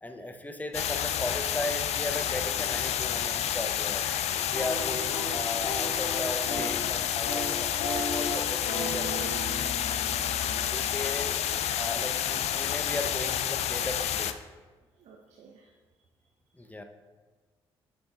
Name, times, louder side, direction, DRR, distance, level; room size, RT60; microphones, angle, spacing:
voice 1, 0.0-4.1 4.5-10.0 10.7-11.4 11.8-14.3 16.6-16.8, left 1 dB, 10° left, 6 dB, 0.7 m, -37 dB
sound 1, 0.7-14.3, left 10 dB, 55° left, 0.4 m, -29 dB
sound 2, 4.4-6.8 7.1-7.5 7.8-11.6, left 1 dB, 75° left, 1.9 m, -37 dB
voice 2, 15.0-15.7, right 5 dB, 60° right, 1 dB, 0.7 m, -56 dB
7.7 x 6.7 x 2.4 m, 1.4 s
hypercardioid pair, 40°, 13 cm